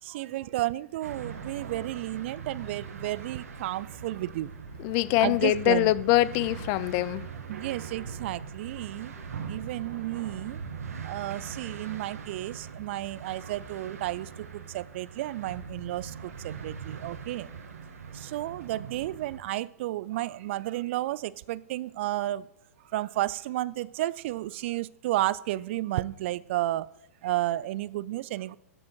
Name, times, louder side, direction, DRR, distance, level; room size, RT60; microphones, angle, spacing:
voice 1, 0.1-4.5 5.2-5.9 7.5-9.1 9.5-10.6 11.0-14.3 14.7-17.5 18.3-22.4 22.9-26.8 27.2-28.5, right 15 dB, 50° right, 0.4 m, -32 dB
sound 1, 1.0-19.4, right 6 dB, 75° right, 1.5 m, -41 dB
voice 2, 4.8-7.3, left 16 dB, 40° left, 0.4 m, -24 dB
13.0 x 5.3 x 4.5 m
hypercardioid pair, 115°, 8 cm